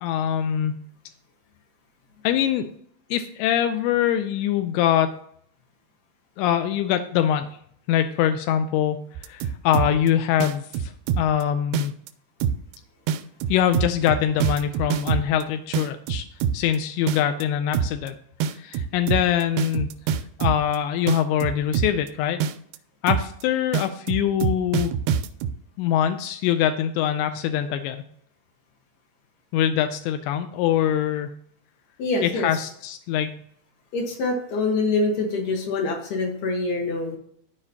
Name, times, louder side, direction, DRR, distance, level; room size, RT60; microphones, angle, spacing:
voice 1, 0.0-0.8 2.2-2.7 3.1-5.1 6.4-7.5 7.9-12.0 13.5-16.3 16.5-18.2 18.6-20.0 20.4-22.4 23.0-24.9 25.8-28.0 29.5-31.3 32.2-33.4, left 10 dB, 85° left, 8 dB, 2.7 m, -23 dB
sound 1, 9.2-10.1 10.4-11.4 11.7-12.1 12.4-12.8 13.1-15.4 15.7-16.8 17.1-17.4 17.7-18.1 18.4-20.8 21.1-22.1 22.4-22.8 23.1-23.4 23.7-25.5, right 8 dB, 90° right, 2.2 m, -25 dB
voice 2, 32.0-32.5 33.9-37.2, left 3 dB, 70° left, 0 dB, 3.1 m, -25 dB
14.0 x 5.0 x 2.8 m, 0.67 s
omnidirectional pair, 5.1 m